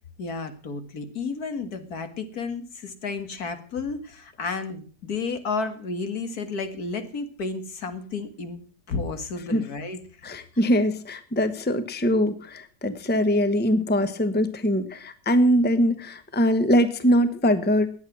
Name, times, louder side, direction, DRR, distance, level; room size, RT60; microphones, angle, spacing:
voice 1, 0.2-8.6 8.9-10.0, left 4 dB, 70° left, 9 dB, 2.2 m, -32 dB
voice 2, 10.2-17.9, equal, 10° left, 11 dB, 0.9 m, -22 dB
20.0 x 8.5 x 6.1 m, 0.43 s
omnidirectional pair, 1.7 m